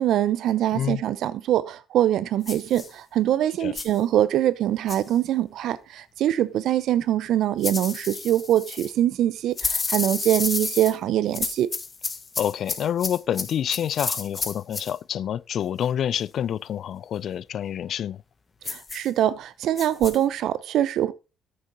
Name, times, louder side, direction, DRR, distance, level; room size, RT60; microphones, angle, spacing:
voice 1, 0.0-11.7 18.7-21.1, right 12 dB, 70° right, 0.7 m, -23 dB
voice 2, 0.7-1.0 3.6-3.7 12.4-18.2, left 9 dB, 65° left, 0.4 m, -28 dB
sound 1, 2.4-2.9 3.7-4.0 4.9-5.1 7.6-8.9 9.6-10.9 11.3-14.9 18.6-19.1 19.8-20.2, left 4 dB, 35° left, 1.3 m, -31 dB
9.4 x 6.4 x 4.1 m
supercardioid pair, 65°, 0 cm